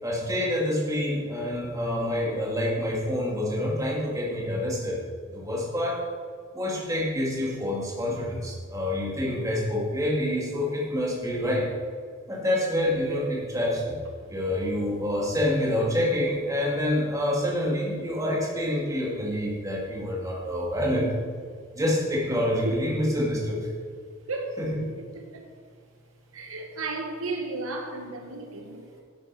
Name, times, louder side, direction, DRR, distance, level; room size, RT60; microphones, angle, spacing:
voice 1, 0.0-5.0 5.3-6.0 6.5-11.7 12.3-14.0 14.3-21.1 21.7-23.7 24.6-24.8, left 1 dB, 15° right, -3 dB, 2.2 m, -27 dB
voice 2, 24.3-24.6 25.3-25.5 26.3-29.0, right 3 dB, 70° right, 3 dB, 1.2 m, -34 dB
11.5 x 9.3 x 4.7 m, 2.1 s
head